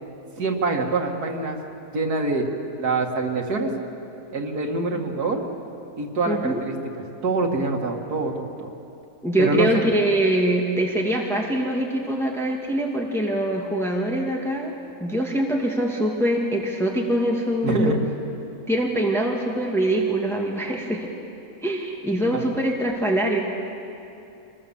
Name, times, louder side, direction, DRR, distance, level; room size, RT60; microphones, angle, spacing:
voice 1, 0.4-1.6 1.9-2.5 2.8-3.7 4.3-5.4 6.0-8.7 9.4-9.8 17.6-18.0 22.3-22.5, right 3 dB, 90° right, 1 dB, 2.6 m, -25 dB
voice 2, 6.3-6.6 9.2-14.7 15.0-18.0 18.7-21.1 21.6-23.4, right 1 dB, ahead, 0 dB, 1.9 m, -23 dB
25.0 x 20.5 x 7.2 m, 2.7 s
omnidirectional pair, 1.6 m